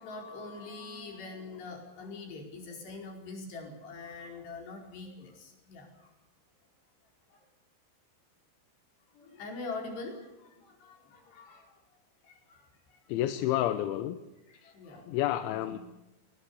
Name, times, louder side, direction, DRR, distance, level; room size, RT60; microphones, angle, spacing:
voice 1, 0.0-6.1 7.3-7.4 9.1-11.8 12.2-13.1 14.5-15.1 15.5-15.8, left 3 dB, 65° left, 1 dB, 6.8 m, -44 dB
voice 2, 13.1-14.2 14.5-14.7 15.1-15.8, left 13 dB, 90° left, 10 dB, 3.3 m, -30 dB
22.0 x 19.5 x 8.6 m, 1.0 s
omnidirectional pair, 5.2 m